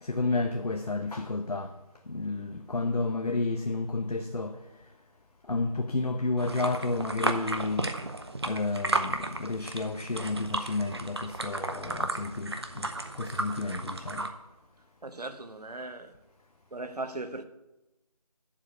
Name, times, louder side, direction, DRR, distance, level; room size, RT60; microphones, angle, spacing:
voice 1, 0.0-1.7 2.1-4.6 5.5-7.9 8.4-14.3, left 3 dB, 80° left, 0.9 m, -31 dB
sound 1, 6.4-14.3, right 2 dB, 40° right, 0.8 m, -34 dB
voice 2, 15.0-16.1 16.7-17.4, right 2 dB, 80° right, 1.0 m, -38 dB
7.3 x 6.9 x 8.1 m
figure-of-eight pair, 170°, 20 cm